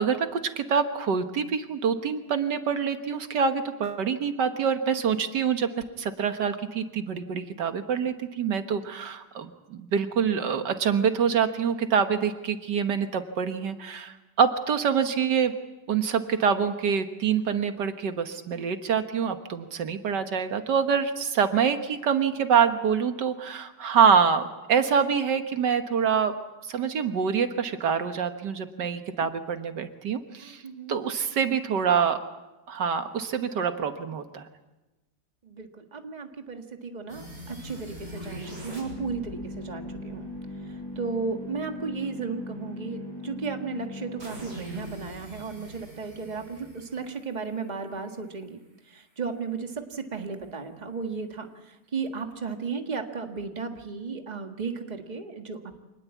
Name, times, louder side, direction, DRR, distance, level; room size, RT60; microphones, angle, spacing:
voice 1, 0.0-5.7 6.0-15.5 15.9-26.4 26.6-30.6 30.9-32.2 32.7-34.4, right 7 dB, 85° right, 8 dB, 2.0 m, -25 dB
voice 2, 35.4-40.3 40.7-48.6 48.9-55.8, right 5 dB, 25° right, 5 dB, 1.8 m, -35 dB
sound 1, 37.1-48.0, left 1 dB, 55° right, 7.8 m, -40 dB
26.0 x 19.5 x 8.3 m, 1.1 s
omnidirectional pair, 1.8 m